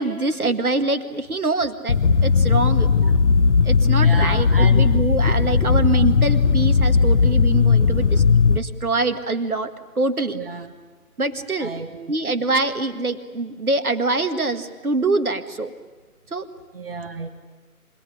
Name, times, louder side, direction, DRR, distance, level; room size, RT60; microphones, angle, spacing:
voice 1, 0.0-2.9 3.7-9.7 10.0-10.4 11.2-11.7 12.1-15.7 16.3-16.5, right 2 dB, 70° right, 9 dB, 2.0 m, -24 dB
sound 1, 1.9-8.6, left 5 dB, 50° left, 0.9 m, -17 dB
voice 2, 4.0-4.9 10.3-10.7 11.6-12.1 16.7-17.3, right 4 dB, 40° right, 8 dB, 1.6 m, -32 dB
26.0 x 19.5 x 9.9 m, 1.3 s
figure-of-eight pair, 145°, 46 cm